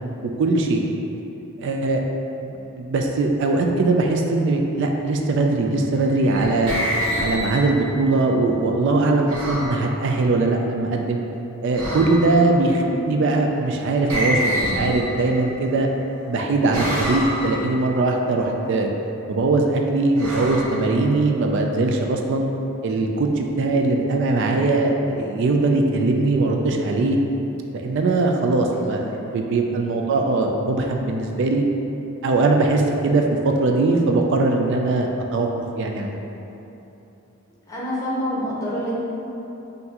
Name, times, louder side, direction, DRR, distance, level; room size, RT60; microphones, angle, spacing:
voice 1, 0.2-0.8 1.6-2.0 2.4-6.7 7.2-11.2 11.6-15.9 16.3-18.9 19.3-22.5 22.8-27.2 27.7-31.6 32.2-35.5 35.8-36.2, right 2 dB, 55° right, 2 dB, 0.3 m, -21 dB
sound 1, 6.0-8.0 9.3-9.8 11.7-12.5 14.1-15.6 16.7-17.7 20.2-21.4, equal, 85° right, 0.8 m, -27 dB
voice 2, 12.7-13.0 28.7-29.1 29.8-30.0 37.7-39.0, equal, 15° left, -6 dB, 0.7 m, -28 dB
5.7 x 2.6 x 2.8 m, 2.9 s
head